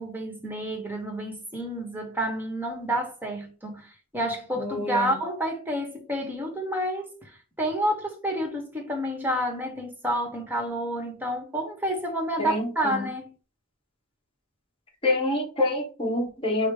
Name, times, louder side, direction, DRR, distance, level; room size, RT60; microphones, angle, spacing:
voice 1, 0.0-7.3 7.6-13.3, right 1 dB, 10° right, 1.0 m, -29 dB
voice 2, 4.6-5.2 12.4-13.1 15.0-16.7, left 2 dB, 25° left, 1.1 m, -27 dB
5.0 x 2.0 x 4.7 m
head